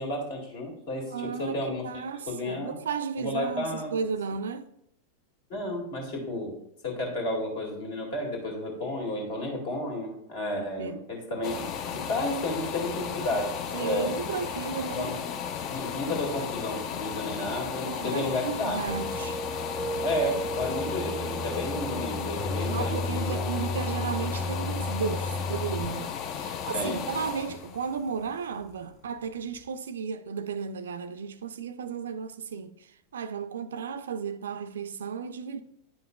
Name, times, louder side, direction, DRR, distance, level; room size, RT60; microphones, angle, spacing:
voice 1, 0.0-1.8 2.3-2.8 3.2-3.9 5.5-6.5 6.8-14.1 14.9-15.1 15.7-18.8 20.0-23.4 26.7-27.1, left 1 dB, 55° left, 1.9 m, -32 dB
voice 2, 1.1-1.6 1.8-4.7 10.6-11.1 13.7-15.2 17.8-19.4 22.7-35.6, right 6 dB, 65° right, 0.4 m, -34 dB
sound 1, 11.4-29.1 29.6-29.7, left 7 dB, 35° left, 0.5 m, -35 dB
sound 2, 18.9-25.9, left 1 dB, 5° left, 0.9 m, -33 dB
9.6 x 5.5 x 2.2 m
figure-of-eight pair, 90°, 0 cm